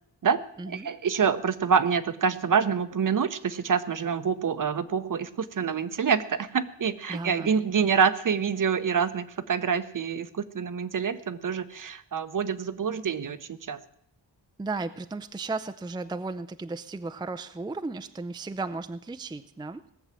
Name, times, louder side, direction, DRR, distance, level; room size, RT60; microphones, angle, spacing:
voice 1, 0.7-13.8, right 6 dB, 45° right, 12 dB, 0.8 m, -26 dB
voice 2, 7.1-7.5 14.6-19.8, right 3 dB, 10° right, 10 dB, 0.5 m, -35 dB
18.5 x 7.1 x 7.6 m, 0.70 s
wide cardioid pair, 110°, 43 cm